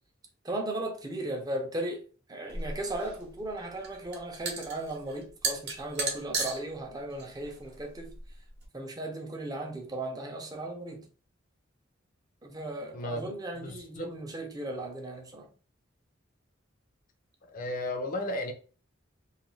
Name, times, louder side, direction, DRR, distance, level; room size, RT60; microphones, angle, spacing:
voice 1, 0.4-2.0 2.3-8.1 8.7-11.1 12.4-15.5, right 1 dB, 20° right, 0.5 m, -36 dB
sound 1, 2.5-8.7, right 3 dB, 55° right, 0.8 m, -36 dB
voice 2, 12.9-14.2 17.5-18.5, left 1 dB, 45° left, 0.5 m, -35 dB
2.4 x 2.3 x 3.0 m
head